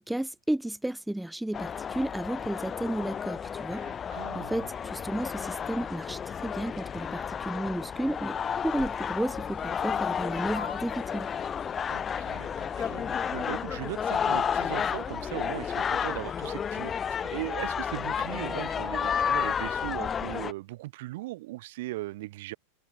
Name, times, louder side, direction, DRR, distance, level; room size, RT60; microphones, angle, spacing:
voice 1, 0.0-3.9 4.1-8.4 8.6-11.3, right 1 dB, 5° right, 0.4 m, -33 dB
sound 1, 1.5-20.5, left 7 dB, 20° left, 0.9 m, -32 dB
voice 2, 3.7-4.7 11.9-22.6, right 19 dB, 50° right, 1.5 m, -39 dB
sound 2, 8.4-13.5, left 8 dB, 70° left, 5.8 m, -50 dB
sound 3, 9.3-18.7, left 23 dB, 40° left, 7.1 m, -60 dB
figure-of-eight pair, 90°, 0 cm